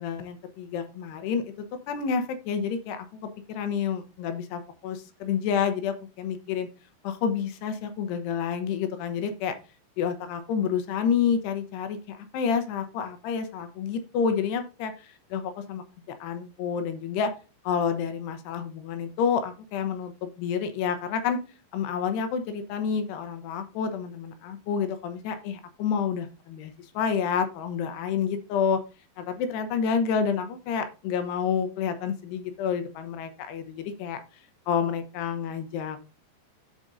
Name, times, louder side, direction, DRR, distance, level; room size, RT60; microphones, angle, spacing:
voice 1, 0.0-6.7 7.0-9.6 10.0-15.8 16.2-17.3 17.6-21.4 21.7-28.8 29.2-34.2 34.7-36.1, left 7 dB, 75° left, 8 dB, 2.9 m, -29 dB
15.0 x 5.2 x 2.6 m, 0.32 s
omnidirectional pair, 5.0 m